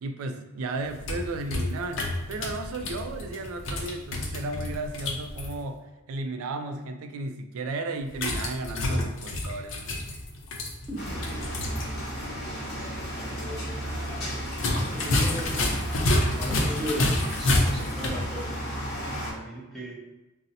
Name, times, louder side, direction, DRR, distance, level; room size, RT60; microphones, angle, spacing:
voice 1, 0.0-10.0, right 2 dB, 85° right, 7 dB, 0.3 m, -34 dB
sound 1, 0.8-5.5 8.1-11.9 12.2-12.3 14.5-18.2, left 1 dB, 65° left, 0.5 m, -29 dB
voice 2, 10.9-11.8 12.5-15.7 16.4-19.9, equal, ahead, -6 dB, 0.6 m, -38 dB
sound 2, 11.0-19.3, equal, 50° left, 1.0 m, -34 dB
2.6 x 2.0 x 3.9 m, 1.1 s
head